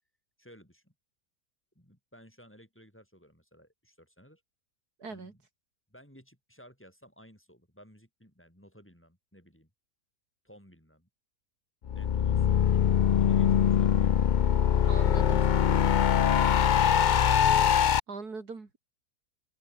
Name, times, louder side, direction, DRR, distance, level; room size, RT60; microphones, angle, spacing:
voice 1, 0.4-0.9 1.8-4.4 5.1-5.4 5.9-9.7 10.4-11.1 11.9-15.0, equal, 5° left, 7.4 m, -56 dB
voice 2, 5.0-5.3 14.9-15.4 18.1-18.8, right 4 dB, 90° right, 3.7 m, -40 dB
sound 1, 11.9-18.0, left 9 dB, 75° left, 0.4 m, -23 dB
omnidirectional pair, 1.6 m